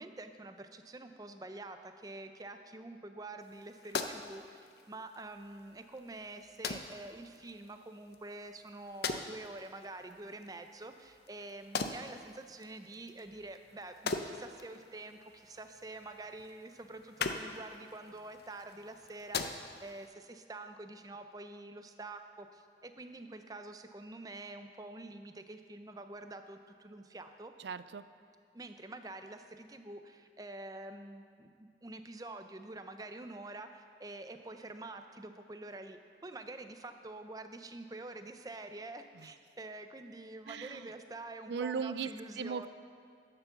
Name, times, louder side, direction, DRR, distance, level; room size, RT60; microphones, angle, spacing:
voice 1, 0.0-27.5 28.5-42.7, right 2 dB, 20° right, 7 dB, 0.5 m, -47 dB
sound 1, 3.4-20.1, left 4 dB, 65° left, 0.6 m, -43 dB
voice 2, 27.6-28.0 39.1-39.3 40.5-40.9 41.5-42.1 42.4-42.7, right 6 dB, 75° right, 14 dB, 0.4 m, -37 dB
10.5 x 6.8 x 6.9 m, 2.1 s
head